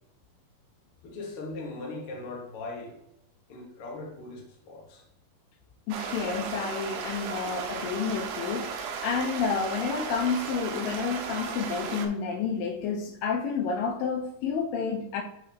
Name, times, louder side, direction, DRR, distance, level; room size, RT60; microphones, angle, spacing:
voice 1, 1.0-3.0 3.5-5.0, left 2 dB, 55° left, 1.8 m, -39 dB
voice 2, 5.9-15.2, left 5 dB, 85° left, 2.2 m, -30 dB
sound 1, 5.9-12.1, right 6 dB, 75° right, 1.9 m, -35 dB
8.8 x 3.6 x 3.4 m
omnidirectional pair, 4.1 m